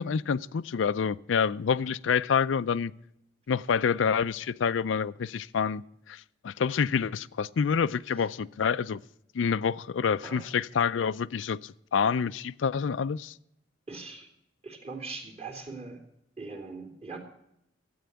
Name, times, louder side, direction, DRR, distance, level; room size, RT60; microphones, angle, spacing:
voice 1, 0.0-2.9 3.5-9.0 9.3-13.3, left 6 dB, 80° left, 0.4 m, -27 dB
voice 2, 13.9-14.3 14.6-16.0 16.4-17.2, right 3 dB, 35° right, 3.0 m, -41 dB
12.5 x 8.7 x 8.1 m
head